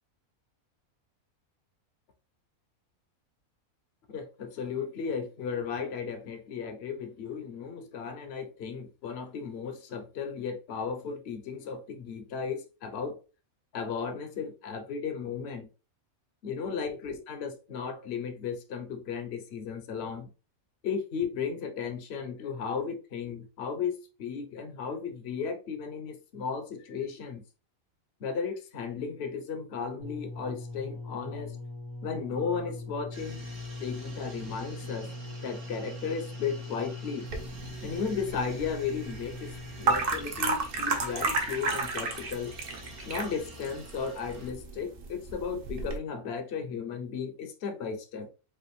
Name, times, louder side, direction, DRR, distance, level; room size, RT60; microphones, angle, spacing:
voice 1, 4.1-13.2 13.7-15.7 16.4-20.3 20.8-27.4 28.2-31.5 32.0-33.4 33.8-35.1 35.4-37.3 37.8-39.5 39.8-42.5 43.1-48.3, left 6 dB, 55° left, 0.9 m, -35 dB
sound 1, 30.0-40.1 40.9-41.0, left 2 dB, 85° left, 2.2 m, -41 dB
sound 2, 33.1-44.5, right 1 dB, 80° right, 1.7 m, -48 dB
sound 3, 37.3-46.0, right 3 dB, 45° right, 0.8 m, -33 dB
5.1 x 2.5 x 3.2 m
omnidirectional pair, 1.5 m